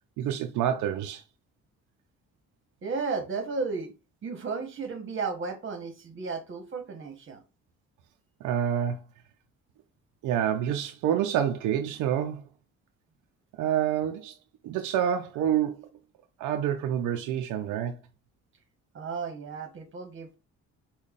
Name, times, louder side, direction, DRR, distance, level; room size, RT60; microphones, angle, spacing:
voice 1, 0.2-1.2 8.4-9.0 10.2-12.4 13.6-14.4 14.6-15.9 16.4-18.0, right 9 dB, 85° right, 0.5 m, -27 dB
voice 2, 2.8-3.9 4.2-7.4 18.9-20.4, right 4 dB, 40° right, 1.1 m, -34 dB
5.2 x 2.3 x 2.4 m
cardioid pair, 90°, 30 cm